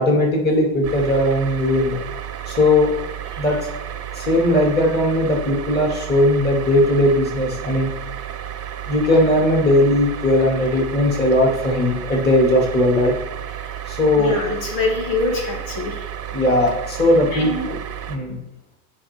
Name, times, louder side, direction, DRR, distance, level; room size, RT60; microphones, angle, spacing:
voice 1, 0.0-2.0 2.5-2.9 3.4-3.6 4.1-7.9 8.9-13.1 13.9-14.4 16.3-17.5 18.1-18.4, left 1 dB, 20° left, -1 dB, 2.6 m, -18 dB
sound 1, 0.8-18.2, right 10 dB, 30° right, 1.1 m, -32 dB
voice 2, 14.1-16.1 17.3-17.7, left 3 dB, 65° left, 1 dB, 2.2 m, -24 dB
11.5 x 5.6 x 3.6 m, 0.86 s
supercardioid pair, 115°, 47 cm